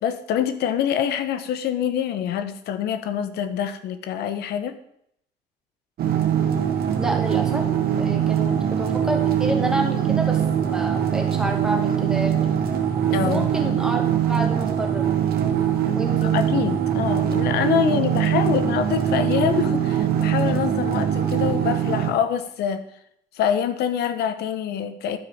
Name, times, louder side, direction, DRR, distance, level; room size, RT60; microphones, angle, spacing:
voice 1, 0.0-4.7 13.1-13.5 16.2-22.8 23.3-25.2, left 9 dB, 75° left, 11 dB, 1.0 m, -25 dB
sound 1, 6.0-22.1, right 9 dB, 65° right, 1.6 m, -22 dB
voice 2, 7.0-7.6 8.0-12.5 13.3-15.1 16.0-16.3, right 1 dB, 5° right, 1 dB, 2.1 m, -29 dB
12.5 x 5.2 x 5.0 m, 0.73 s
cardioid pair, 110°, 17 cm